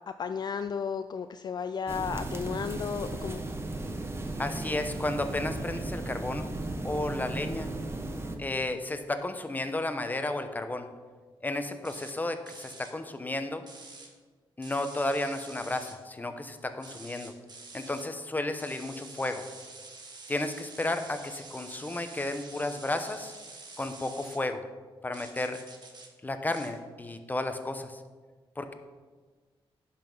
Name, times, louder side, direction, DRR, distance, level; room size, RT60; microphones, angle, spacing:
voice 1, 0.2-3.4, left 6 dB, 45° left, 10 dB, 0.3 m, -33 dB
sound 1, 1.9-8.3, right 2 dB, 25° right, 1.1 m, -35 dB
voice 2, 4.4-6.4 6.8-7.7 8.4-10.9 11.4-13.6 14.6-17.3 17.7-19.4 20.3-23.3 23.8-24.6 25.0-25.6 26.2-28.0 28.6-28.7, left 2 dB, 20° left, 7 dB, 0.9 m, -33 dB
sound 2, 11.8-12.1 12.5-12.9 13.7-14.1 14.6-16.0 16.8-18.1 18.6-24.4 25.1-26.1 26.5-26.7, right 3 dB, 50° right, 1.5 m, -48 dB
10.5 x 5.8 x 5.4 m, 1.4 s
cardioid pair, 100°, 10 cm